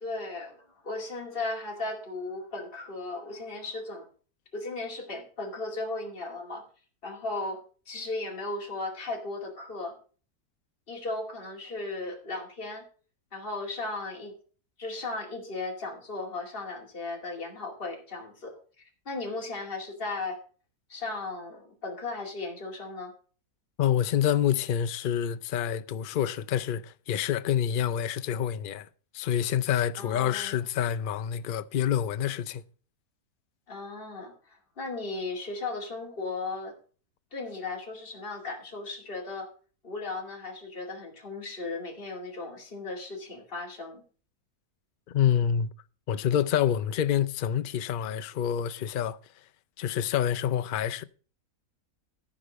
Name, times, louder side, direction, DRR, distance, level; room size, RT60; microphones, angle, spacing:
voice 1, 0.0-4.1 4.5-6.6 7.0-10.0 10.9-12.9 13.3-14.3 14.8-20.4 20.9-23.1 30.0-30.6 33.7-36.8 37.3-39.5 39.8-44.0, left 3 dB, 35° left, 2.6 m, -36 dB
voice 2, 23.8-28.9 29.1-32.6 45.1-45.7 46.1-49.2 49.8-51.0, left 9 dB, 75° left, 0.4 m, -27 dB
13.5 x 5.1 x 6.3 m
omnidirectional pair, 1.6 m